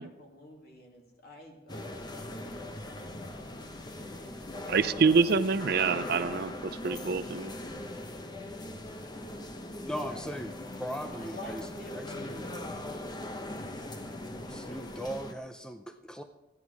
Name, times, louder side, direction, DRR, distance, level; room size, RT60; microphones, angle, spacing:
voice 1, 0.0-5.2 9.0-9.6 10.1-10.2 11.1-12.6, left 1 dB, 60° left, 0 dB, 2.6 m, -50 dB
sound 1, 1.7-15.3, left 1 dB, 25° left, 0.9 m, -40 dB
voice 2, 4.7-7.5, right 5 dB, 60° right, 14 dB, 0.5 m, -26 dB
voice 3, 9.8-10.5 10.8-11.6 11.9-12.5 14.5-16.2, equal, 5° left, 7 dB, 0.5 m, -38 dB
14.5 x 9.8 x 4.8 m, 1.1 s
head